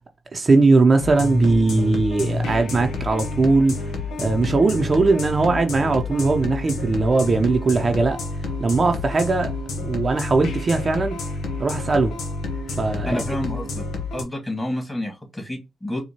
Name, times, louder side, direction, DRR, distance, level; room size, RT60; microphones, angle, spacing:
voice 1, 0.3-3.8 4.2-8.2 8.6-9.5 9.8-11.2 11.6-12.2 12.8-13.2, right 3 dB, 45° right, 0.6 m, -19 dB
sound 1, 1.0-14.2, left 3 dB, 85° left, 0.7 m, -29 dB
voice 2, 13.0-13.9 14.1-16.0, left 1 dB, 20° left, 1.9 m, -29 dB
4.4 x 2.3 x 2.8 m
supercardioid pair, 45°, 0 cm